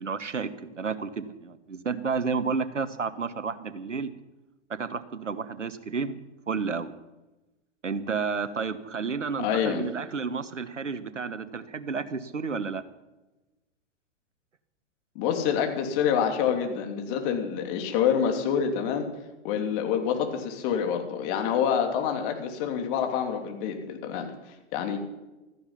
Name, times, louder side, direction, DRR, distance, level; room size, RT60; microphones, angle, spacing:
voice 1, 0.0-4.1 4.7-6.2 6.5-6.9 7.8-12.8, right 5 dB, 85° right, 13 dB, 1.3 m, -31 dB
voice 2, 9.4-9.8 15.1-19.1 19.4-24.3 24.7-25.0, left 8 dB, 45° left, 4 dB, 3.1 m, -27 dB
15.5 x 14.0 x 5.7 m, 1.0 s
figure-of-eight pair, 100°, 36 cm